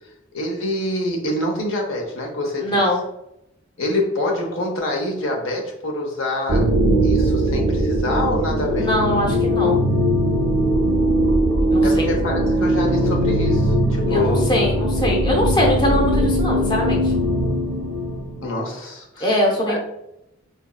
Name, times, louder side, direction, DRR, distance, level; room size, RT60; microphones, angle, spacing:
voice 1, 0.3-2.8 3.8-6.7 7.0-8.9 11.8-14.5 18.4-19.4 19.7-19.8, left 1 dB, 70° left, 0 dB, 0.7 m, -26 dB
voice 2, 2.6-3.0 8.7-9.8 11.7-12.1 14.1-17.1 19.2-19.8, left 1 dB, 20° left, -2 dB, 0.5 m, -22 dB
sound 1, 6.5-18.5, equal, 75° right, 0.5 m, -20 dB
4.0 x 2.6 x 2.2 m, 0.83 s
head